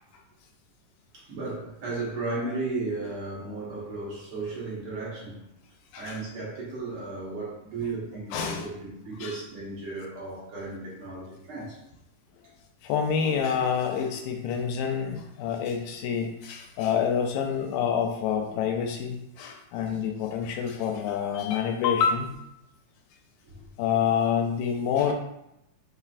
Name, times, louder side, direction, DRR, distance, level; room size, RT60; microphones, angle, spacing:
voice 1, 1.1-5.5 6.0-11.8 19.7-20.0 23.4-23.6 23.9-24.0, right 3 dB, 65° right, -6 dB, 1.3 m, -35 dB
voice 2, 8.3-8.7 9.2-9.4 12.8-22.3 23.8-25.1, left 7 dB, 85° left, 3 dB, 2.2 m, -27 dB
5.6 x 3.5 x 2.4 m, 0.82 s
omnidirectional pair, 4.1 m